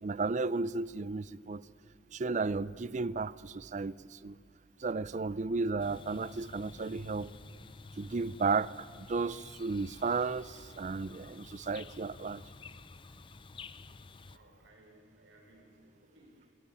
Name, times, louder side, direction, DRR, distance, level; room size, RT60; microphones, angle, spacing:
voice 1, 0.0-1.6 2.1-4.4 4.8-7.3 8.0-12.4, right 4 dB, 40° right, 19 dB, 0.4 m, -34 dB
sound 1, 5.8-14.4, left 4 dB, 25° left, 0.5 m, -51 dB
voice 2, 14.3-16.5, right 1 dB, 70° right, 0 dB, 5.1 m, -60 dB
21.5 x 16.5 x 8.7 m, 2.4 s
head